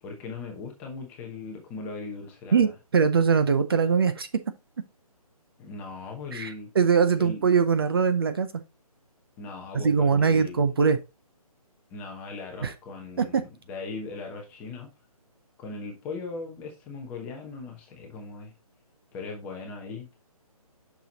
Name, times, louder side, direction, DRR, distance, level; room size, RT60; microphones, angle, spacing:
voice 1, 0.0-2.7 5.6-6.7 7.2-7.4 9.4-10.7 11.9-14.9 15.6-18.5 19.1-20.1, left 4 dB, 10° left, 0.8 m, -39 dB
voice 2, 2.5-4.3 6.3-8.5 9.7-11.0 12.6-12.7 13.2-13.4, right 6 dB, 40° right, 0.6 m, -22 dB
6.8 x 6.1 x 2.8 m
hypercardioid pair, 165°, 19 cm